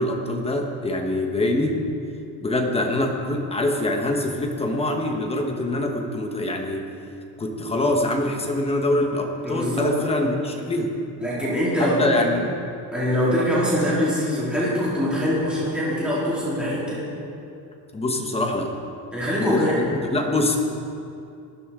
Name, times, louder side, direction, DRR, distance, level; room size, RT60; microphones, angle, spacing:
voice 1, 0.0-1.8 2.4-6.9 7.4-11.0 11.8-12.5 17.9-18.7 19.4-20.6, left 1 dB, 15° left, 2 dB, 1.1 m, -24 dB
voice 2, 9.4-10.0 11.2-12.0 12.9-17.1 19.1-19.8, equal, ahead, -9 dB, 3.5 m, -23 dB
19.5 x 15.0 x 3.7 m, 2.6 s
cardioid pair, 175°, 43 cm